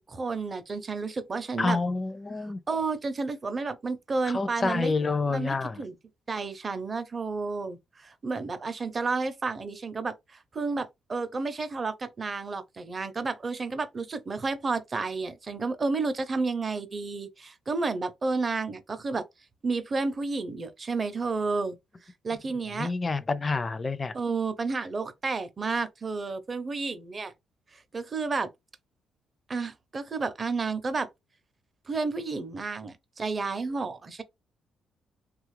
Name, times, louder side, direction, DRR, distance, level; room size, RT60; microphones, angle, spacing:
voice 1, 0.1-1.8 2.7-4.9 5.3-5.9 6.3-19.2 19.6-21.8 22.2-22.9 24.1-27.3 27.7-28.5 29.5-31.1 31.9-34.2, right 4 dB, 35° right, 0.6 m, -31 dB
voice 2, 1.6-2.6 4.2-5.8 22.8-24.1, left 3 dB, 30° left, 0.4 m, -28 dB
3.0 x 2.4 x 3.1 m
cardioid pair, 90°, 0 cm